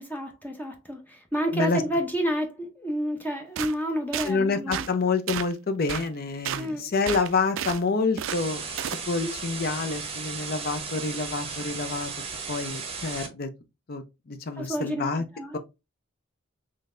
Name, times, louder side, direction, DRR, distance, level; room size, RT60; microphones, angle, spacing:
voice 1, 0.0-4.8 6.5-6.9 9.2-9.4 14.6-15.6, equal, 10° left, 0.6 m, -30 dB
sound 1, 3.6-3.7 4.1-4.3 4.7-4.9 5.3-5.5 5.9-6.1 6.5-6.7 7.1-7.8 8.2-8.4 8.8-9.0, right 10 dB, 65° right, 0.3 m, -31 dB
voice 2, 4.2-8.6 9.1-12.1 12.5-13.5 13.9-15.2 15.5-15.6, left 4 dB, 45° left, 0.5 m, -27 dB
sound 2, 8.3-13.3, right 5 dB, 30° right, 0.8 m, -35 dB
3.8 x 3.2 x 2.5 m
head